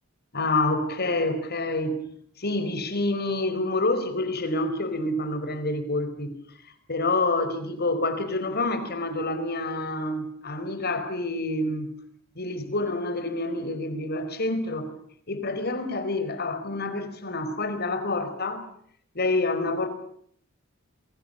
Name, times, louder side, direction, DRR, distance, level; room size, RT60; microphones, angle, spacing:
voice 1, 0.3-2.0 2.4-6.3 6.9-11.9 12.3-14.9 15.3-18.6 19.1-19.9, left 2 dB, 50° left, 4.8 m, -27 dB
28.0 x 23.5 x 7.0 m
head